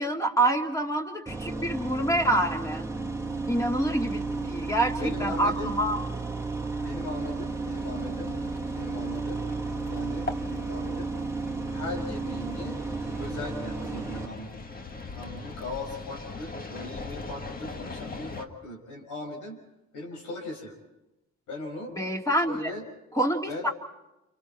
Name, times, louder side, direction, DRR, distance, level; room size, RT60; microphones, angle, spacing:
voice 1, 0.0-2.8 3.5-6.0 21.9-22.6 23.1-23.7, right 1 dB, 10° left, 2 dB, 2.7 m, -27 dB
sound 1, 1.3-14.3, right 3 dB, 10° right, 1.7 m, -33 dB
voice 2, 5.0-5.7 6.8-8.3 8.7-9.4 9.9-11.1 11.7-12.8 13.2-14.7 15.1-19.6 19.9-20.8 21.5-21.9 22.5-22.8 23.5-23.7, left 2 dB, 80° left, 1 dB, 6.3 m, -38 dB
sound 2, 7.1-18.5, left 3 dB, 30° left, 1.7 m, -41 dB
29.0 x 26.5 x 4.4 m, 0.93 s
cardioid pair, 90°, 30 cm